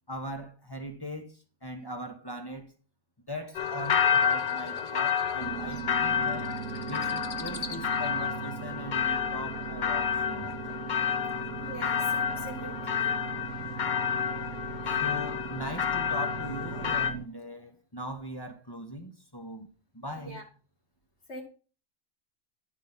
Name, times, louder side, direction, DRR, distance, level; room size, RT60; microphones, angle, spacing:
voice 1, 0.1-2.7 3.3-6.5 6.8-10.6 11.2-11.3 14.9-19.7 19.9-20.4, equal, 20° left, 1.0 m, -40 dB
sound 1, 3.5-17.1, left 8 dB, 45° left, 0.9 m, -30 dB
sound 2, 5.4-17.3, right 10 dB, 80° right, 0.9 m, -40 dB
voice 2, 11.6-13.3 20.2-20.4 21.3-21.4, left 1 dB, 65° left, 2.3 m, -43 dB
11.5 x 4.6 x 5.5 m
omnidirectional pair, 1.2 m